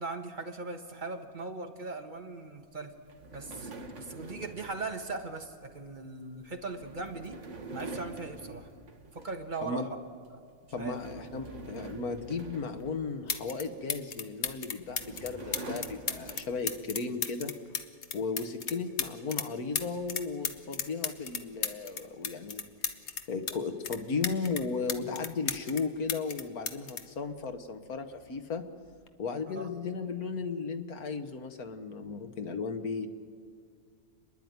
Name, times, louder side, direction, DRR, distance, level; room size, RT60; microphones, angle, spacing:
voice 1, 0.0-3.0 3.3-7.4 7.7-8.7 9.1-9.9 10.3-10.4 10.8-11.0 29.5-29.7, right 3 dB, 35° right, 5 dB, 1.6 m, -39 dB
sound 1, 3.1-9.6 10.0-10.3 10.7-13.7 14.5-16.9, right 2 dB, 55° right, 1.8 m, -46 dB
voice 2, 10.7-17.5 18.1-22.6 23.3-28.6 29.2-33.1, left 4 dB, 80° left, 7 dB, 1.8 m, -35 dB
sound 2, 12.8-12.9 13.3-13.6 13.9-19.5 19.7-23.6 23.8-25.8 26.1-27.9 28.9-29.1, left 6 dB, 50° left, 1.3 m, -35 dB
29.5 x 10.5 x 9.5 m, 2.3 s
omnidirectional pair, 1.5 m